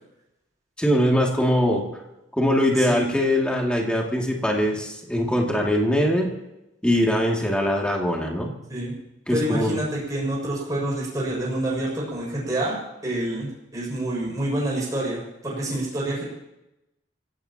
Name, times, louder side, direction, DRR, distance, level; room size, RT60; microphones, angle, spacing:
voice 1, 0.8-1.8 2.3-6.3 6.8-8.5 9.3-9.8, equal, 5° left, -1 dB, 2.5 m, -22 dB
voice 2, 9.3-12.8 13.0-16.2, right 1 dB, 20° right, -5 dB, 6.6 m, -27 dB
27.5 x 16.5 x 3.0 m, 0.92 s
head